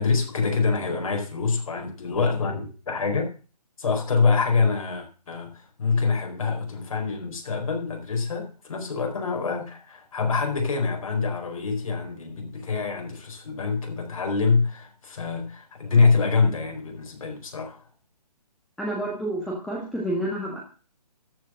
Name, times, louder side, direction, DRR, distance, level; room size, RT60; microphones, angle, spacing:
voice 1, 0.0-3.3 3.8-17.8, left 4 dB, 55° left, 4.5 m, -25 dB
voice 2, 18.8-20.6, right 1 dB, ahead, 1.6 m, -29 dB
13.5 x 5.3 x 7.5 m
hypercardioid pair, 160°, 21 cm